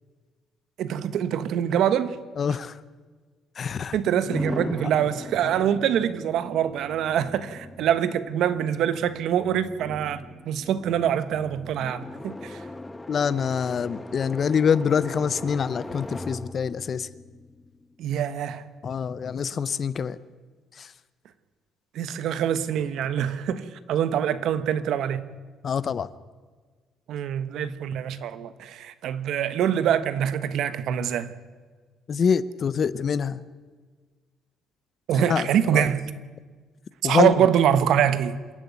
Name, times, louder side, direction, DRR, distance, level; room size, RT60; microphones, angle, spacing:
voice 1, 0.8-2.2 3.9-12.6 18.0-18.6 21.9-25.3 27.1-31.3 35.1-36.0 37.0-38.4, right 9 dB, 65° right, 1.2 m, -24 dB
voice 2, 2.4-2.8 3.6-4.0 13.1-17.1 18.8-20.2 20.8-20.9 25.6-26.1 32.1-33.4 35.1-35.9 37.0-37.4, left 6 dB, 35° left, 0.6 m, -25 dB
sound 1, 4.3-18.1, left 2 dB, 10° left, 0.9 m, -39 dB
27.0 x 11.0 x 9.5 m
cardioid pair, 165°, 0 cm